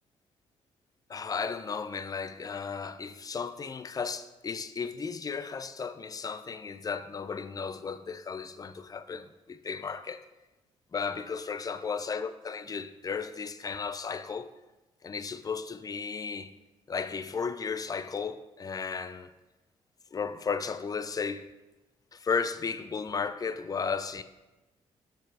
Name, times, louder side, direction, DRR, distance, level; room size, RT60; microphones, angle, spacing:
voice 1, 1.1-10.2 10.9-14.5 15.0-16.5 16.9-19.3 20.1-21.5 22.1-24.2, left 5 dB, 30° left, 0.4 m, -34 dB
5.8 x 4.6 x 4.8 m
supercardioid pair, 60°, 12 cm